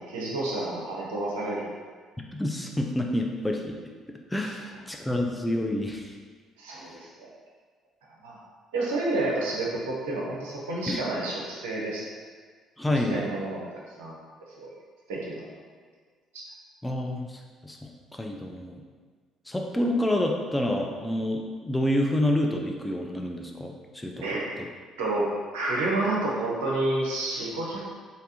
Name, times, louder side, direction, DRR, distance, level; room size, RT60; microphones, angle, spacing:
voice 1, 0.0-1.6 6.6-7.3 8.2-8.4 8.7-12.0 13.1-14.2 14.6-14.7 15.1-15.5 16.3-16.5 24.2-24.4 25.0-27.8, right 2 dB, 70° right, -4 dB, 0.6 m, -29 dB
voice 2, 2.3-3.8 4.3-6.1 6.7-6.9 10.9-11.0 12.8-13.3 16.8-18.8 19.5-24.2 24.6-24.7, left 1 dB, 10° left, 1 dB, 0.5 m, -28 dB
3.3 x 2.7 x 2.7 m, 1.5 s
figure-of-eight pair, 50°, 0 cm